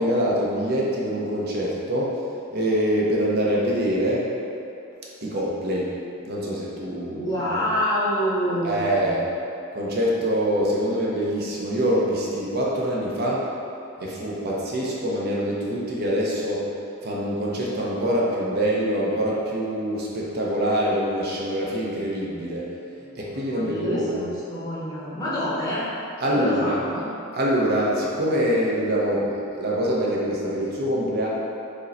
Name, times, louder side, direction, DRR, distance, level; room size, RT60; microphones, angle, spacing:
voice 1, 0.0-2.1 2.5-4.3 5.2-7.3 8.6-9.3 9.7-13.5 14.0-16.7 17.0-22.7 23.2-24.2 26.2-26.8 27.3-31.3, equal, 45° right, -4 dB, 0.6 m, -24 dB
voice 2, 7.2-9.0 23.0-25.9 26.3-27.1, equal, 20° left, -8 dB, 0.7 m, -27 dB
5.0 x 2.1 x 3.9 m, 2.7 s
head